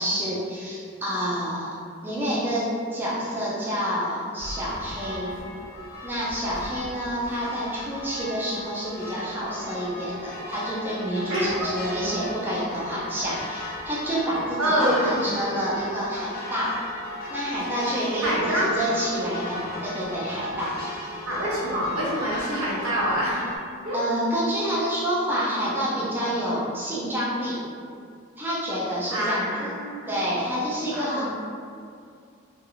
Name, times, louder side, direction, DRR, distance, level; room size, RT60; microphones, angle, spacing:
voice 1, 0.0-1.8 2.0-5.4 6.0-16.8 17.3-20.7 23.9-27.6 28.4-29.5 30.1-31.3, equal, 10° right, -8 dB, 0.4 m, -28 dB
sound 1, 4.4-23.6, left 1 dB, 45° left, 0.5 m, -37 dB
voice 2, 14.6-15.2 18.2-18.7 21.3-23.4 23.8-24.0 29.1-30.2 30.9-31.3, equal, 85° right, -6 dB, 0.8 m, -25 dB
2.7 x 2.4 x 2.7 m, 2.3 s
head